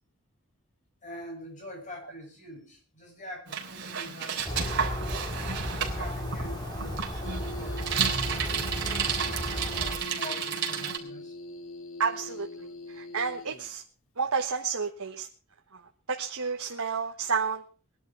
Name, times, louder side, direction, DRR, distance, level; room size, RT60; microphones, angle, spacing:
voice 1, 1.0-5.3 5.8-7.9 8.2-11.4, equal, 35° left, 1 dB, 7.6 m, -45 dB
Bicycle, 3.5-11.0, right 6 dB, 55° right, 3.7 m, -32 dB
sound 1, 4.4-10.0, left 1 dB, 20° left, 4.2 m, -34 dB
sound 2, 7.2-13.7, equal, 70° left, 2.1 m, -42 dB
voice 2, 12.0-13.8 14.2-15.3 15.7-15.8 16.1-17.6, right 5 dB, 90° right, 2 dB, 1.4 m, -31 dB
21.0 x 11.5 x 4.6 m, 0.38 s
head